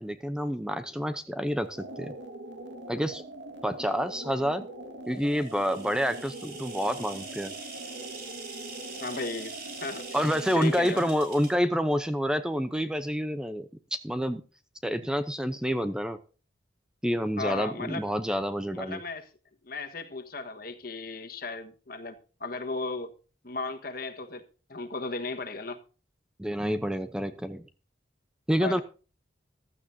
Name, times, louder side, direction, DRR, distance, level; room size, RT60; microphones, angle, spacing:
voice 1, 0.0-2.1 2.9-3.2 3.6-4.7 5.1-7.5 10.1-14.4 14.8-16.2 17.0-19.0 26.4-27.6 28.5-28.8, equal, 5° right, 0.7 m, -28 dB
sound 1, 1.6-11.2, right 1 dB, 75° right, 1.7 m, -43 dB
sound 2, 5.2-11.5, right 4 dB, 55° right, 5.2 m, -44 dB
voice 2, 9.0-11.0 17.4-18.1 18.7-19.3 19.6-23.1 23.4-25.8 28.6-28.8, left 3 dB, 50° left, 1.4 m, -36 dB
15.0 x 12.5 x 2.7 m
head